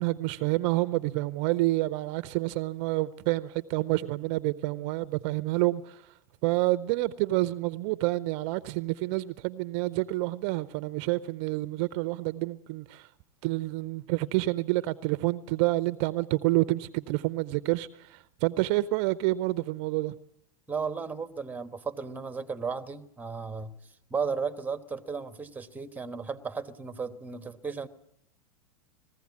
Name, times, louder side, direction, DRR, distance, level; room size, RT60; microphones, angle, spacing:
voice 1, 0.0-6.0 6.4-13.1 13.4-20.1, right 19 dB, 50° right, 0.7 m, -28 dB
voice 2, 20.7-23.7 24.1-27.9, right 5 dB, 10° right, 1.3 m, -34 dB
21.0 x 15.5 x 9.6 m
hypercardioid pair, 120°, 18 cm